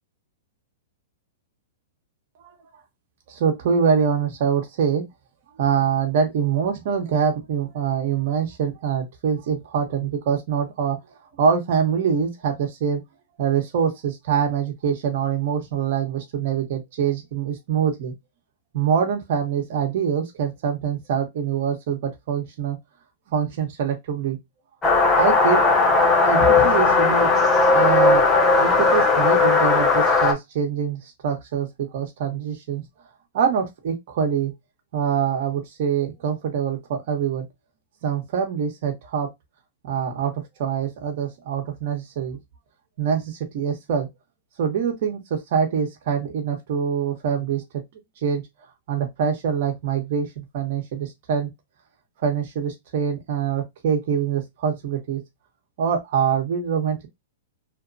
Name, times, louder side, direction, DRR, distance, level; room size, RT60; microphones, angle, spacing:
voice 1, 3.3-5.1 5.6-11.0 11.4-13.0 13.4-18.1 18.7-22.8 23.3-24.4 25.2-25.6 26.2-27.3 27.7-28.2 28.6-32.8 33.3-34.5 34.9-37.5 38.0-39.3 39.8-42.4 43.0-44.1 44.6-47.6 48.2-48.4 48.9-51.5 52.2-55.2 55.8-57.1, right 7 dB, 55° right, 0.9 m, -24 dB
sound 1, 24.8-30.3, left 4 dB, 15° left, 0.6 m, -17 dB
2.9 x 2.1 x 2.5 m
hypercardioid pair, 145°, 0 cm